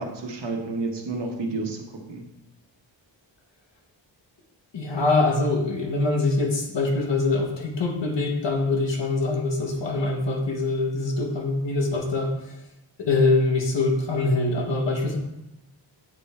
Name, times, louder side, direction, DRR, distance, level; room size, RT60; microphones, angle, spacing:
voice 1, 0.0-2.2, right 3 dB, 65° right, 1 dB, 1.2 m, -30 dB
voice 2, 4.7-12.5 13.0-15.2, left 2 dB, 70° left, 1 dB, 1.3 m, -24 dB
8.4 x 3.5 x 4.3 m, 0.91 s
wide cardioid pair, 130°, 45 cm